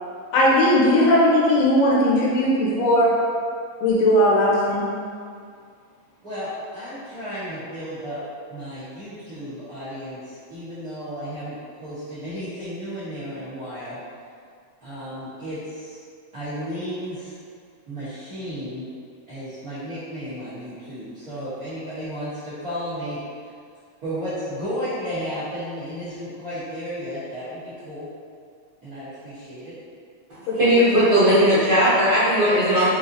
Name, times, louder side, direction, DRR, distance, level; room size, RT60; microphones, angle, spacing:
voice 1, 0.3-3.1 3.8-4.9 30.5-30.8, left 1 dB, 80° left, -5 dB, 2.1 m, -18 dB
voice 2, 6.2-8.2 8.5-14.0 14.8-16.0 16.3-17.3 17.9-18.9 19.3-23.2 24.0-28.1 28.8-29.7, equal, 80° right, -16 dB, 0.8 m, -33 dB
voice 3, 30.3-32.9, equal, 55° right, -16 dB, 1.2 m, -18 dB
5.4 x 2.8 x 2.6 m, 2.3 s
omnidirectional pair, 3.5 m